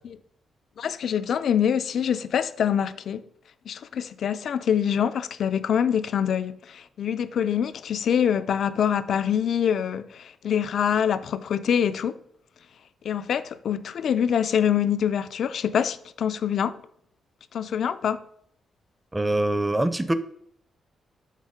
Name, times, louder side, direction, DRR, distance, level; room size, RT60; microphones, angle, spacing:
voice 1, 0.8-3.2 3.7-12.2 13.0-16.8 17.5-18.2, left 8 dB, 65° left, 0.3 m, -25 dB
voice 2, 19.1-20.1, right 1 dB, 10° right, 0.4 m, -24 dB
6.5 x 3.8 x 4.8 m
cardioid pair, 125°, 0 cm